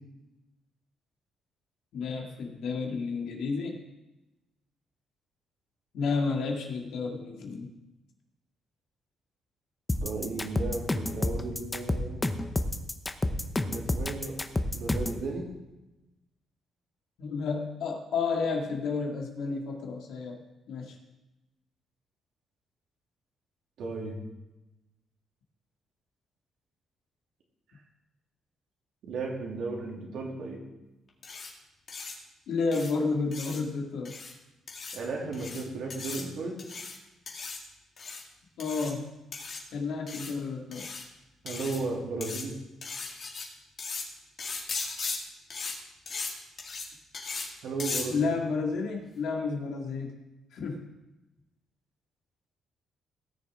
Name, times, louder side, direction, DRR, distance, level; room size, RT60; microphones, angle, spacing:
voice 1, 1.9-3.8 5.9-7.7 17.2-21.0 32.5-34.1 38.6-39.1 39.7-40.9 48.1-50.2 50.5-50.9, left 4 dB, 75° left, 1 dB, 2.1 m, -31 dB
sound 1, 9.9-15.2, left 1 dB, 15° left, 0.8 m, -29 dB
voice 2, 10.0-12.2 13.6-14.4 14.7-15.5 23.8-24.2 29.0-30.6 34.9-36.6 41.4-42.5 47.6-48.3, right 3 dB, 75° right, -1 dB, 2.8 m, -34 dB
sound 2, 31.2-31.5 31.9-32.1 32.7-32.9 33.3-33.6 34.0-34.3 34.7-35.0 35.3-35.6 35.9-36.2 36.6-37.0 37.3-37.6 38.0-38.2 38.6-38.9 39.3-39.6 40.1-40.3 40.7-41.0 41.5-41.8 42.2-42.4 42.8-43.4 43.8-44.0 44.4-45.2 45.5-45.7 46.1-46.3 46.6-46.9 47.1-47.5 47.8-48.0, left 4 dB, 50° left, 2.4 m, -37 dB
17.5 x 7.1 x 3.7 m, 1.0 s
cardioid pair, 90°, 0 cm